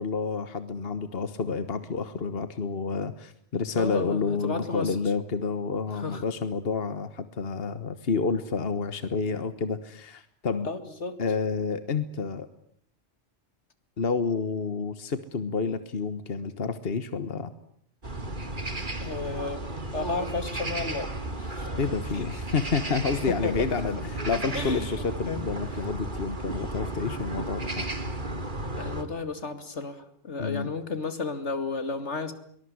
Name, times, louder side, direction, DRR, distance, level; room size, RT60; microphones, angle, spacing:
voice 1, 0.0-10.7 11.2-12.5 14.0-17.5 21.8-27.9 30.4-30.7, left 4 dB, 60° left, 12 dB, 1.6 m, -29 dB
voice 2, 3.8-4.9 5.9-6.2 10.6-11.2 19.0-19.6 19.9-21.7 22.1-22.3 23.3-23.6 24.5-24.9 25.3-25.4 28.8-32.3, left 4 dB, 85° left, 10 dB, 2.8 m, -33 dB
sound 1, 18.0-29.0, right 2 dB, 45° right, 2.9 m, -34 dB
23.5 x 20.5 x 9.6 m, 0.68 s
omnidirectional pair, 1.2 m